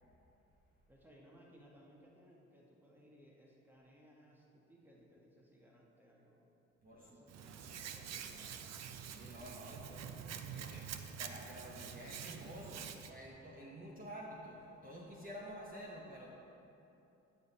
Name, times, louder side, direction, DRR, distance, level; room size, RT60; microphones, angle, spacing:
voice 1, 0.9-6.5 6.9-8.6, equal, 5° right, -3 dB, 1.2 m, -63 dB
voice 2, 6.8-7.5 9.0-10.1 10.3-10.9 11.2-16.3, equal, 30° right, -3 dB, 0.9 m, -50 dB
Hands, 7.3-13.1, right 7 dB, 60° right, 0.5 m, -47 dB
9.3 x 7.1 x 2.8 m, 2.9 s
cardioid pair, 90°, 30 cm